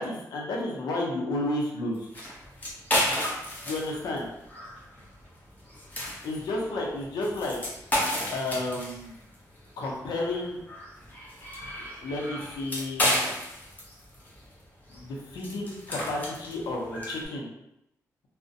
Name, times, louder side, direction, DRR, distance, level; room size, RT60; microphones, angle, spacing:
voice 1, 0.0-2.1 3.6-4.3 6.2-7.6 8.3-9.2 9.8-10.6 12.0-13.1 14.9-17.5, left 2 dB, 85° left, -1 dB, 0.6 m, -31 dB
sound 1, 1.9-17.3, equal, 25° left, 0.8 m, -33 dB
2.4 x 2.1 x 2.5 m, 0.85 s
cardioid pair, 90°, 7 cm